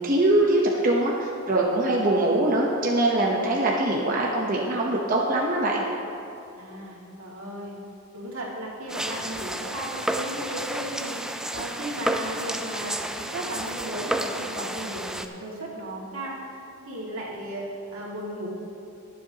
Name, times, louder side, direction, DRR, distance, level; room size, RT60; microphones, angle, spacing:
voice 1, 0.0-5.8, right 1 dB, 40° right, -3 dB, 0.9 m, -23 dB
voice 2, 6.6-7.8 8.1-16.4 16.9-18.5, right 1 dB, 85° right, -4 dB, 2.3 m, -35 dB
sound 1, 8.9-15.3, right 1 dB, 5° right, 0.3 m, -31 dB
21.0 x 7.5 x 2.9 m, 2.8 s
head